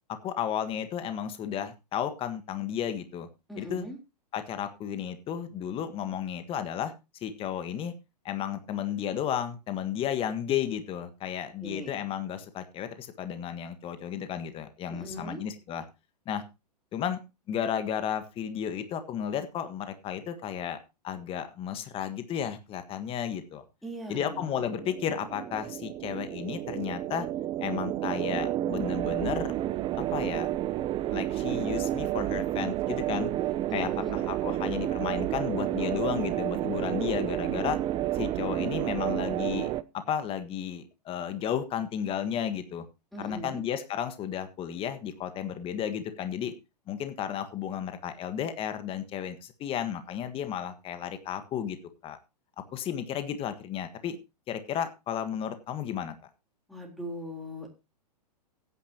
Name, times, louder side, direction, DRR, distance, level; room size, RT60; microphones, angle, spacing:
voice 1, 0.1-3.3 3.6-3.8 4.3-6.9 7.2-7.9 8.2-15.8 16.2-16.4 16.9-17.2 17.5-20.8 21.0-23.6 24.1-27.3 27.6-29.6 30.1-30.5 31.1-33.3 33.7-37.8 38.1-42.8 43.2-46.5 46.9-51.8 52.0-52.2 52.7-54.2 54.5-56.1, left 9 dB, 25° left, 10 dB, 1.5 m, -33 dB
voice 2, 3.5-4.0 11.6-12.0 14.9-15.4 23.8-24.7 33.7-34.2 43.1-43.6 56.7-57.7, equal, ahead, 2 dB, 3.8 m, -40 dB
sound 1, 24.3-39.8, right 13 dB, 25° right, 0.6 m, -31 dB
16.0 x 9.6 x 2.9 m, 0.27 s
hypercardioid pair, 115°, 21 cm